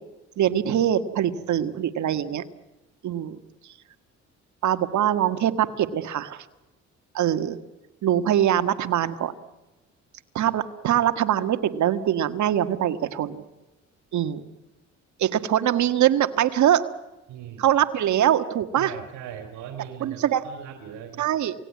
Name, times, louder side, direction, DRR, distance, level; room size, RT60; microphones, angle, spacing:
voice 1, 0.4-2.4 3.0-3.4 4.6-6.4 7.1-7.6 8.0-9.3 10.3-13.4 14.1-14.4 15.2-16.8 17.6-18.9 20.0-20.4 21.2-21.5, right 11 dB, 70° right, 10 dB, 1.7 m, -23 dB
voice 2, 17.3-17.7 18.8-21.2, right 9 dB, 90° right, 5 dB, 3.2 m, -39 dB
28.0 x 18.0 x 9.5 m, 1.1 s
cardioid pair, 90°, 30 cm